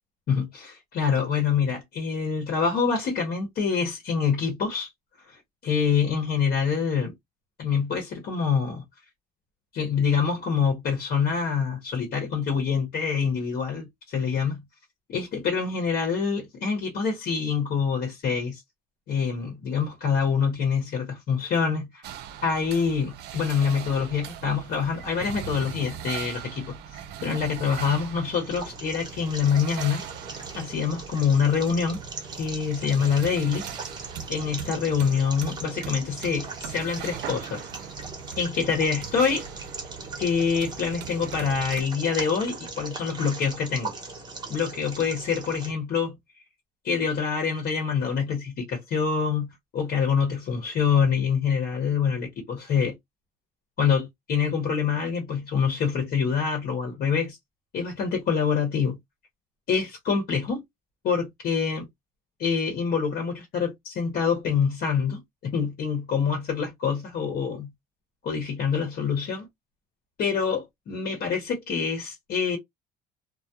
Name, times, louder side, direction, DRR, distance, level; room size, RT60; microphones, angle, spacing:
voice 1, 0.3-4.9 5.3-7.1 7.6-8.8 9.7-14.6 15.1-18.6 19.1-22.0 22.4-30.0 30.5-32.0 32.4-33.6 34.3-37.7 38.4-39.4 40.2-43.9 44.5-46.2 46.8-53.0 53.8-57.4 57.7-59.0 59.7-60.6 61.0-61.9 62.4-67.7 68.2-69.5 70.2-72.6, left 6 dB, 65° left, 0.9 m, -26 dB
sound 1, 22.0-41.8, right 9 dB, 80° right, 0.4 m, -40 dB
sound 2, 28.3-45.7, right 3 dB, 25° right, 0.9 m, -40 dB
2.2 x 2.0 x 2.7 m
cardioid pair, 110°, 17 cm